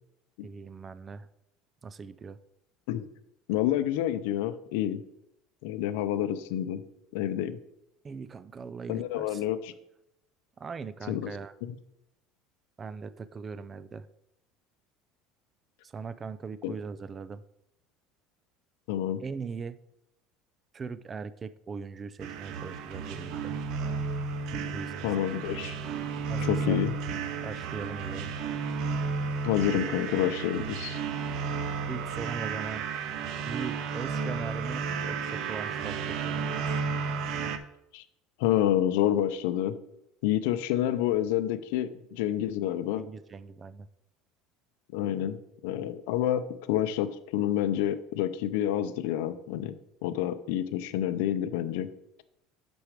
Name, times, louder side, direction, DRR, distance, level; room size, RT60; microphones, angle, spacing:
voice 1, 0.4-1.3 1.8-2.4 8.0-9.4 10.6-11.5 12.8-14.1 15.8-17.4 19.2-19.8 20.7-23.6 24.5-25.3 26.3-26.8 27.4-28.3 31.9-32.8 33.5-36.8 43.0-43.9, right 5 dB, 20° right, 15 dB, 0.3 m, -40 dB
voice 2, 3.5-5.0 5.6-6.8 7.1-7.6 8.9-9.7 11.1-11.3 11.6-11.7 16.6-16.7 18.9-19.2 25.0-25.8 26.4-26.9 29.4-31.0 37.9-38.0 38.4-39.8 40.2-43.0 44.9-45.4 45.6-49.7 50.0-51.9, left 11 dB, 85° left, 12 dB, 0.6 m, -28 dB
sound 1, 22.2-37.6, right 5 dB, 55° right, 0.6 m, -33 dB
6.5 x 6.2 x 4.9 m, 0.82 s
cardioid pair, 155°, 0 cm